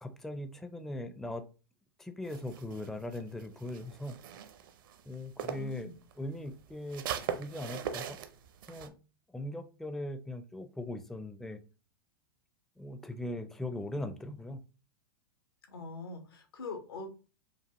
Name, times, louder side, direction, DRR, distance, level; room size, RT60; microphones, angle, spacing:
voice 1, 0.0-1.4 2.0-4.2 5.1-5.9 6.2-7.1 7.4-8.2 8.7-9.0 9.3-11.6 12.8-14.6, left 1 dB, 5° left, 8 dB, 0.4 m, -39 dB
sound 1, 2.3-5.8 6.1-8.9, right 9 dB, 65° right, 0.6 m, -40 dB
voice 2, 5.4-5.9 15.7-17.1, left 3 dB, 85° left, 6 dB, 1.2 m, -43 dB
5.2 x 2.4 x 2.9 m, 0.34 s
hypercardioid pair, 115°, 12 cm